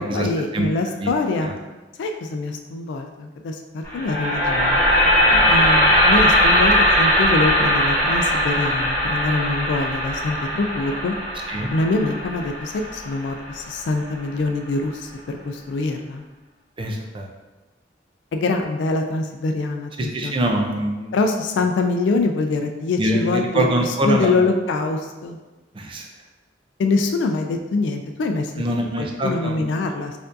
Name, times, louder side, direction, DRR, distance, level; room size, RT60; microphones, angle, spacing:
voice 1, 0.0-1.5 2.0-4.8 5.5-11.1 11.7-16.2 18.3-20.4 21.1-23.7 24.0-25.4 26.8-28.5 29.0-30.1, left 3 dB, 85° left, 4 dB, 0.3 m, -24 dB
sound 1, 3.8-14.0, equal, 20° left, 1.5 m, -19 dB
voice 2, 16.8-17.3 20.0-21.1 23.0-24.4 25.7-26.1 28.6-29.7, right 1 dB, 30° right, 2 dB, 0.4 m, -24 dB
4.5 x 2.6 x 2.5 m, 1.2 s
head